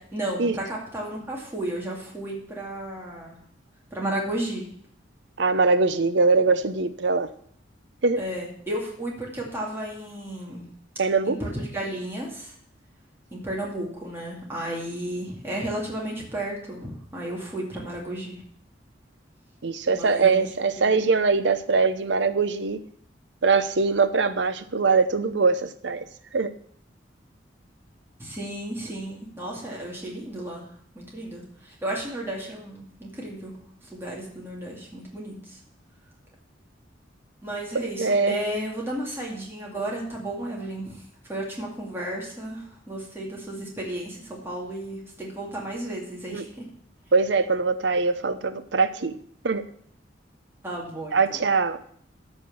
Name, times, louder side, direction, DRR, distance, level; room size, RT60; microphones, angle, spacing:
voice 1, 0.0-3.4 3.9-4.7 8.2-10.7 11.3-12.5 13.3-18.4 19.9-20.5 20.8-21.0 28.2-30.6 30.9-33.5 33.9-35.6 37.4-41.0 41.3-46.7 50.6-51.4, right 1 dB, 15° right, -3 dB, 2.3 m, -33 dB
voice 2, 5.4-7.3 8.0-8.2 11.0-11.4 19.6-22.8 23.4-26.1 26.3-26.5 37.7-38.3 46.3-46.4 47.1-49.2 49.4-49.6 51.1-51.8, right 4 dB, 70° right, 12 dB, 0.7 m, -22 dB
13.5 x 4.5 x 7.1 m, 0.62 s
head